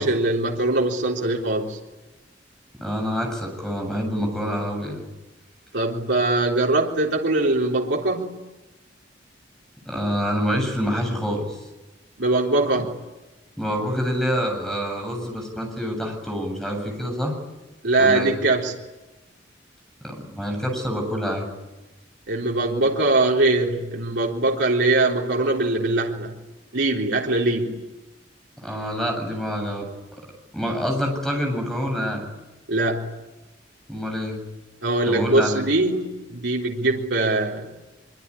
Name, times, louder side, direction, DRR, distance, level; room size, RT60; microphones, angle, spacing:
voice 1, 0.0-1.8 5.7-8.4 12.2-12.9 17.8-18.8 22.3-26.3 26.7-27.9 32.7-33.1 34.8-37.7, right 2 dB, 80° right, -1 dB, 3.7 m, -22 dB
voice 2, 2.8-5.0 9.9-11.6 13.6-17.3 18.0-18.3 20.0-21.5 28.6-29.9 30.5-32.2 33.9-34.4 35.1-35.6, equal, ahead, 2 dB, 7.8 m, -26 dB
24.5 x 24.0 x 10.0 m, 1.1 s
head